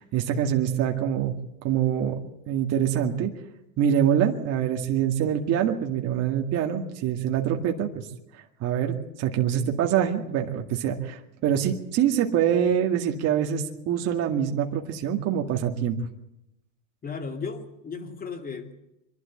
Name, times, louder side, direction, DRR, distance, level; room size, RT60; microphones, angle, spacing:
voice 1, 0.0-1.3 1.6-3.3 3.8-8.1 8.6-16.0, right 9 dB, 45° right, 2 dB, 2.1 m, -25 dB
voice 2, 17.0-18.7, left 5 dB, 25° left, 6 dB, 2.6 m, -35 dB
24.5 x 12.0 x 9.0 m, 0.87 s
supercardioid pair, 125°, 36 cm